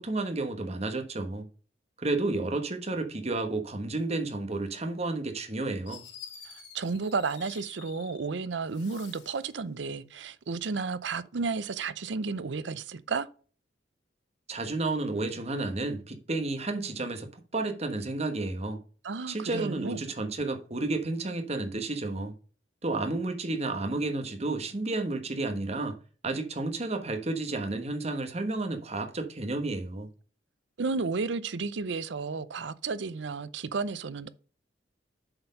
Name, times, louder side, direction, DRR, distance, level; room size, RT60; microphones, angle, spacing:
voice 1, 0.0-1.5 2.0-6.0 14.5-18.8 19.3-22.3 22.8-25.9 26.2-30.1, right 2 dB, 35° right, 1.2 m, -31 dB
Fireworks, 5.9-8.3 8.6-9.5, left 7 dB, 75° left, 3.3 m, -49 dB
voice 2, 6.5-13.3 19.0-20.0 30.8-34.3, right 4 dB, 70° right, 0.6 m, -32 dB
7.7 x 4.5 x 5.3 m
head